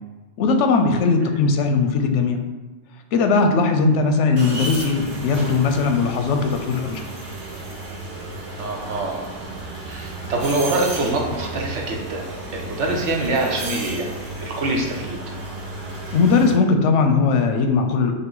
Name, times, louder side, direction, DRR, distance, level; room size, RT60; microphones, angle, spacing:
voice 1, 0.4-2.4 3.1-7.1 16.1-18.1, left 4 dB, 90° left, 5 dB, 0.9 m, -19 dB
sound 1, 4.4-16.5, right 2 dB, 60° right, 1.2 m, -33 dB
voice 2, 8.6-9.3 9.9-15.3, right 2 dB, 85° right, 1 dB, 1.1 m, -25 dB
5.5 x 2.1 x 3.8 m, 1.3 s
omnidirectional pair, 1.2 m